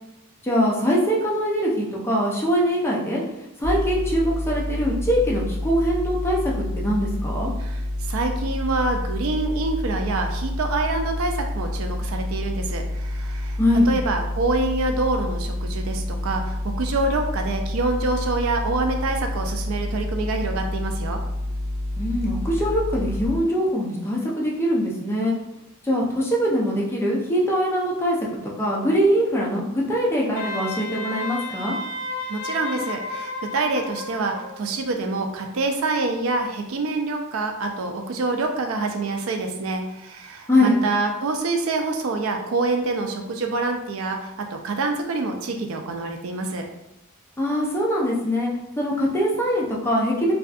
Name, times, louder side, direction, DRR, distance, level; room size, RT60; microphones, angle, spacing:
voice 1, 0.4-3.2 3.6-7.5 13.6-13.9 22.0-25.4 25.8-28.2 28.6-31.8 40.5-40.8 47.4-48.5 48.8-50.3, equal, 10° left, -3 dB, 0.5 m, -22 dB
sound 1, 3.6-23.3, left 1 dB, 25° right, 0.9 m, -28 dB
voice 2, 7.6-13.6 13.9-21.2 32.3-46.7, right 3 dB, 85° right, 4 dB, 0.4 m, -26 dB
Wind instrument woodwind instrument, 30.4-34.6, left 3 dB, 80° left, 0.4 m, -32 dB
2.6 x 2.3 x 2.4 m, 0.87 s
head